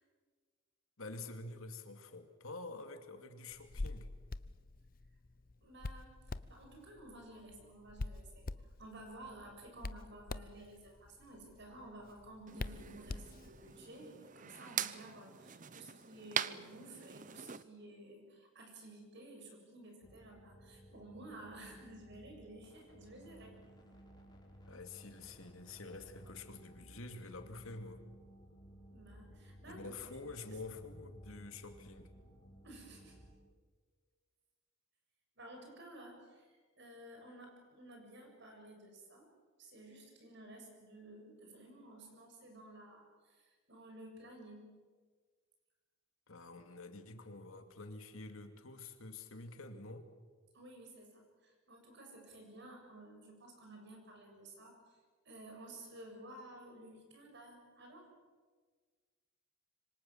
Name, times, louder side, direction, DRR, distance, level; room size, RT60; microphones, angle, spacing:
voice 1, 1.0-4.1 24.7-28.0 29.7-32.1 46.3-50.1, left 3 dB, 80° left, 6 dB, 2.6 m, -48 dB
Hands, 3.5-13.8, left 2 dB, 45° left, 0.7 m, -46 dB
voice 2, 5.6-8.5 8.8-23.6 28.9-30.0 30.4-30.6 32.6-33.2 35.4-39.3 39.6-44.7 50.5-55.0 55.2-58.1, right 1 dB, 55° right, 2 dB, 7.5 m, -54 dB
sound 1, 12.5-17.6, right 9 dB, 40° right, 0.8 m, -43 dB
sound 2, 20.0-33.3, equal, 20° left, 5.4 m, -57 dB
26.5 x 25.0 x 7.5 m, 1.5 s
head